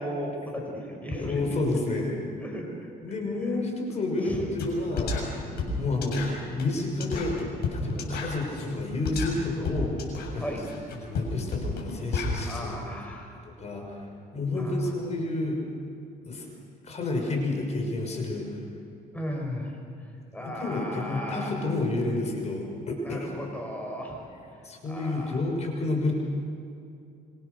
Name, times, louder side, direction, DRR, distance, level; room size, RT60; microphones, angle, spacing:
voice 1, 0.0-1.6 1.9-2.0 2.4-2.7 4.2-4.5 5.5-5.8 7.9-8.1 10.4-10.6 12.5-13.4 14.5-14.8 19.1-19.8 20.3-21.5 23.0-24.2 24.9-25.4, equal, 10° left, 0 dB, 5.8 m, -36 dB
voice 2, 1.1-2.3 3.0-5.5 5.8-7.4 7.7-10.7 11.0-12.8 13.6-15.6 16.2-16.5 16.8-18.6 20.4-23.3 24.6-26.1, left 2 dB, 40° left, 2 dB, 5.8 m, -30 dB
sound 1, 4.6-4.7 5.0-12.6, left 3 dB, 70° left, 7.4 m, -32 dB
27.0 x 25.5 x 6.7 m, 2.6 s
cardioid pair, 110°, 17 cm